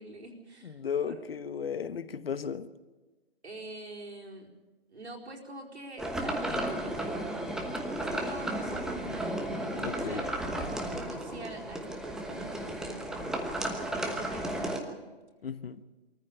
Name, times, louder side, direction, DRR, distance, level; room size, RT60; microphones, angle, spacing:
voice 1, 0.0-1.3 3.4-4.5 4.9-6.8 8.0-9.3 9.9-10.4 10.9-13.6 13.9-15.0, right 2 dB, 85° right, 4.7 m, -45 dB
voice 2, 0.6-2.7 9.7-10.3 15.4-15.8, left 7 dB, 65° left, 1.2 m, -35 dB
sound 1, 6.0-14.8, right 1 dB, ahead, 1.1 m, -34 dB
23.5 x 14.5 x 8.3 m
figure-of-eight pair, 140°, 32 cm